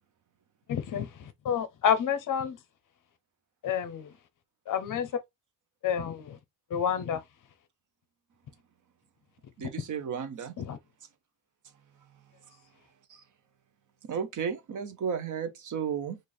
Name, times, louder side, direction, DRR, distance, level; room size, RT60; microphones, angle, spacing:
voice 1, 0.7-2.6 3.6-4.1 4.7-5.1 5.8-6.4 6.7-7.2 9.6-9.7 10.6-10.8, left 8 dB, 45° left, 0.6 m, -29 dB
voice 2, 9.6-10.5 13.1-13.2 14.0-16.2, right 7 dB, 45° right, 0.6 m, -33 dB
3.2 x 2.5 x 3.9 m
cardioid pair, 175°, 45 cm